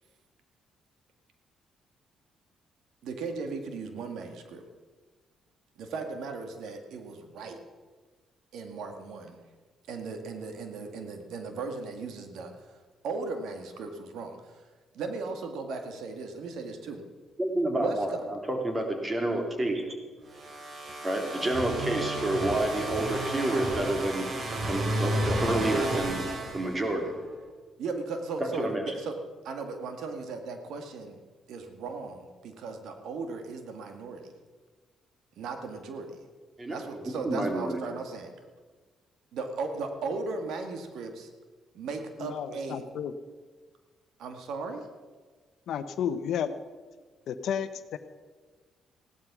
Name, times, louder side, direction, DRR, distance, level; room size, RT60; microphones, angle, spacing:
voice 1, 3.0-4.6 5.8-7.6 8.5-9.4 9.9-12.5 13.0-14.4 14.9-17.0 17.7-18.3 27.8-29.2 29.4-31.2 31.5-34.3 35.4-36.2 36.7-38.3 39.3-41.3 41.7-42.8 44.2-44.8, right 4 dB, 80° right, 6 dB, 1.9 m, -36 dB
voice 2, 17.4-19.8 21.0-26.3 26.5-27.1 28.4-28.9 36.6-36.8 37.2-37.8, right 1 dB, 25° right, 3 dB, 3.2 m, -29 dB
sound 1, 20.3-27.2, right 1 dB, 45° right, 3.0 m, -32 dB
voice 3, 42.2-43.1 45.7-46.5 47.3-48.0, left 8 dB, 75° left, 11 dB, 0.9 m, -32 dB
16.5 x 12.0 x 6.1 m, 1.4 s
cardioid pair, 90°, 0 cm